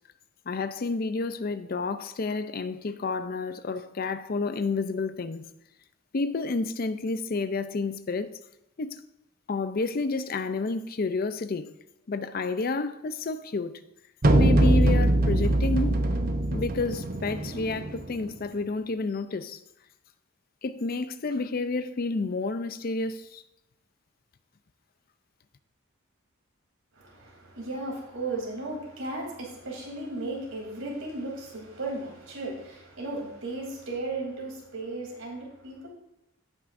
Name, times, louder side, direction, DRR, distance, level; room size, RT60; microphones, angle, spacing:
voice 1, 0.5-5.5 6.1-8.4 8.8-9.0 9.5-11.7 12.1-13.8 14.3-16.0 16.5-19.6 20.6-23.4, left 3 dB, 45° left, 0.5 m, -30 dB
sound 1, 14.2-18.2, right 1 dB, 40° right, 0.7 m, -23 dB
voice 2, 26.9-35.9, right 2 dB, 70° right, 3.2 m, -35 dB
16.5 x 6.1 x 2.6 m
head